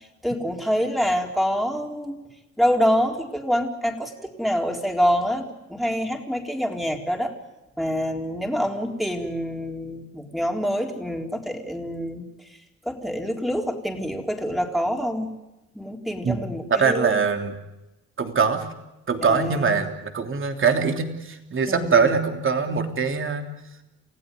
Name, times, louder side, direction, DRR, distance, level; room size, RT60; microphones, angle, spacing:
voice 1, 0.2-2.2 2.6-7.3 7.8-12.3 12.8-15.3 15.7-17.1 19.2-19.8 21.7-22.2, equal, ahead, 1 dB, 4.1 m, -26 dB
voice 2, 16.7-17.6 18.2-18.7 19.1-23.5, right 5 dB, 40° right, 5 dB, 3.2 m, -22 dB
29.0 x 16.5 x 9.5 m, 1.0 s
cardioid pair, 90°, 30 cm